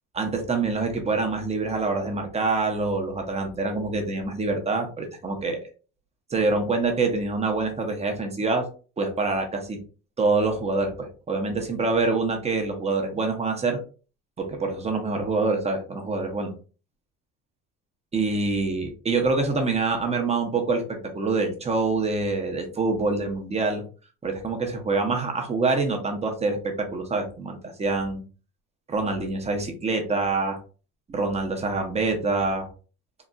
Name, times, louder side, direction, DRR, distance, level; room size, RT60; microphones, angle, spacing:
voice 1, 0.1-5.6 6.3-8.7 9.0-9.8 10.2-13.8 14.4-16.5 18.1-23.8 24.2-28.2 28.9-30.6 31.1-32.7, right 3 dB, 20° right, 3 dB, 0.6 m, -26 dB
3.9 x 2.3 x 2.2 m, 0.36 s
cardioid pair, 145°, 34 cm